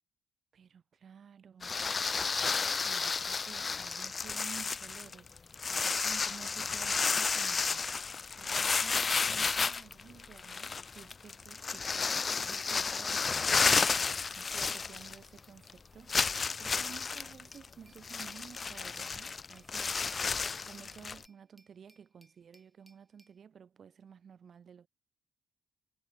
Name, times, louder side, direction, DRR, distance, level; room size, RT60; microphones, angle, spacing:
voice 1, 0.5-1.9 2.3-5.3 5.7-7.8 8.3-16.2 16.6-19.9 20.6-24.9, right 7 dB, 50° right, 2.6 m, -53 dB
sound 1, 1.6-15.4 15.7-15.8 16.1-21.3, left 5 dB, 35° left, 0.6 m, -32 dB
Glass, 17.5-23.4, right 1 dB, 10° right, 6.0 m, -67 dB
cardioid pair, 90°, 0 cm